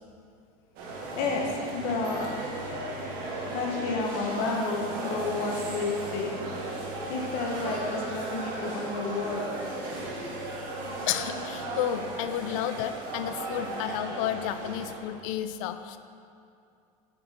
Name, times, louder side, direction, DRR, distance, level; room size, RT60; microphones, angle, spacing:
sound 1, 0.8-15.0, right 2 dB, 55° right, 1.7 m, -36 dB
voice 1, 1.1-2.2 3.5-6.5 7.1-9.5, left 3 dB, 55° left, -1 dB, 1.2 m, -31 dB
voice 2, 11.1-16.0, left 11 dB, 75° left, 10 dB, 0.5 m, -31 dB
8.7 x 5.3 x 4.3 m, 2.5 s
supercardioid pair, 135°, 18 cm